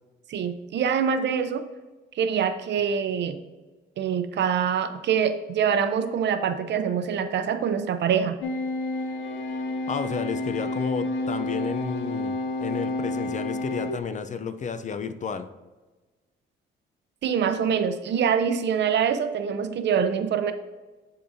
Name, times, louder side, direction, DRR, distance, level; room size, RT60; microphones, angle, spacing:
voice 1, 0.3-1.6 2.2-3.4 4.0-8.4 17.2-20.5, right 7 dB, 60° right, 9 dB, 0.6 m, -25 dB
sound 1, 8.4-14.0, left 2 dB, 80° left, 0.7 m, -30 dB
voice 2, 9.9-15.5, left 6 dB, 40° left, 10 dB, 0.5 m, -32 dB
10.0 x 3.9 x 2.7 m, 1.2 s
cardioid pair, 90°, 20 cm